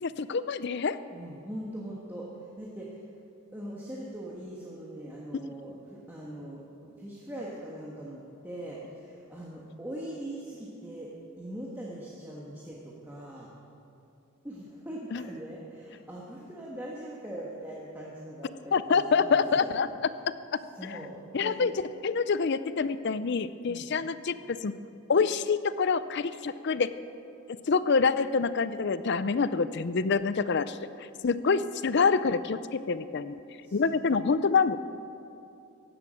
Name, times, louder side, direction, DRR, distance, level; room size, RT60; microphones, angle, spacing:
voice 1, 0.0-1.0 15.1-15.2 18.7-19.9 20.9-21.0 21.3-21.7 22.0-24.7 25.1-26.9 27.7-33.4 33.7-34.8, left 5 dB, 50° left, 14 dB, 0.5 m, -26 dB
voice 2, 1.1-3.0 3.5-13.5 14.4-19.8 20.0-20.2 20.7-21.7 23.7-23.9 33.6-34.1, right 1 dB, 10° right, -5 dB, 1.5 m, -41 dB
15.5 x 11.0 x 6.3 m, 2.6 s
head